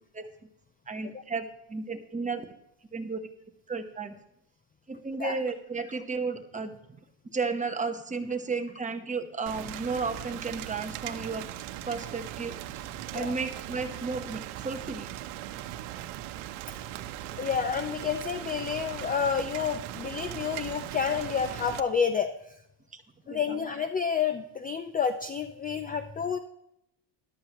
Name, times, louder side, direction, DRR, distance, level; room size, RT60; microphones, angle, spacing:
voice 1, 0.9-2.5 2.9-3.3 3.7-4.1 4.9-7.0 7.3-11.5 11.9-12.5 13.1-15.1 22.9-23.0 23.3-23.6, right 4 dB, 15° right, 5 dB, 1.1 m, -33 dB
Rain, 9.5-21.8, right 12 dB, 85° right, 1.0 m, -39 dB
voice 2, 17.3-22.3 23.3-26.4, left 6 dB, 20° left, 10 dB, 0.4 m, -29 dB
13.5 x 11.5 x 3.0 m, 0.81 s
cardioid pair, 140°, 48 cm